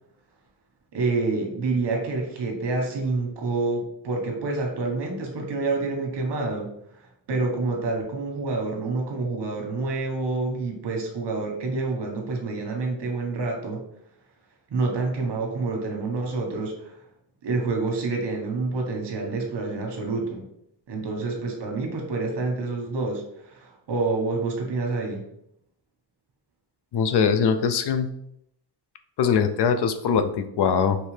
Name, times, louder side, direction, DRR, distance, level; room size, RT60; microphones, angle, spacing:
voice 1, 0.9-6.7 7.3-13.8 14.7-17.0 17.4-20.4 20.9-25.3, right 3 dB, 80° right, 2 dB, 1.2 m, -28 dB
voice 2, 26.9-28.1 29.2-31.0, left 6 dB, 75° left, 9 dB, 0.6 m, -22 dB
4.7 x 3.3 x 3.2 m, 0.75 s
wide cardioid pair, 155°, 41 cm